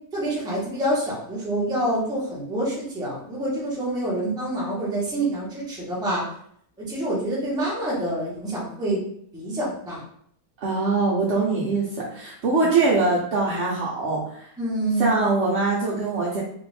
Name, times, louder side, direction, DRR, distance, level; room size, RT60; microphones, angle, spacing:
voice 1, 0.1-6.3 6.8-9.0 9.3-10.0 12.6-12.7 14.6-15.2, right 1 dB, 5° right, -6 dB, 0.8 m, -27 dB
voice 2, 10.6-14.5 15.0-16.4, right 3 dB, 55° right, -5 dB, 0.8 m, -23 dB
3.4 x 2.5 x 3.2 m, 0.66 s
omnidirectional pair, 1.6 m